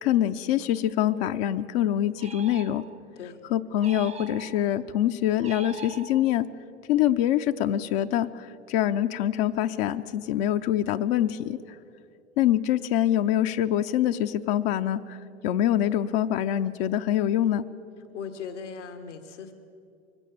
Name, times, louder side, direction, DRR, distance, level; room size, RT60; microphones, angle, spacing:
voice 1, 0.0-2.8 3.5-6.5 6.9-11.6 12.4-15.2 15.4-17.6, left 11 dB, 55° left, 7 dB, 0.8 m, -25 dB
sound 1, 2.2-3.2 3.8-4.8 5.4-6.6, right 5 dB, 20° right, 0.6 m, -43 dB
voice 2, 18.1-19.5, left 6 dB, 80° left, 7 dB, 1.6 m, -38 dB
23.5 x 16.5 x 7.1 m, 2.5 s
hypercardioid pair, 90°, 35 cm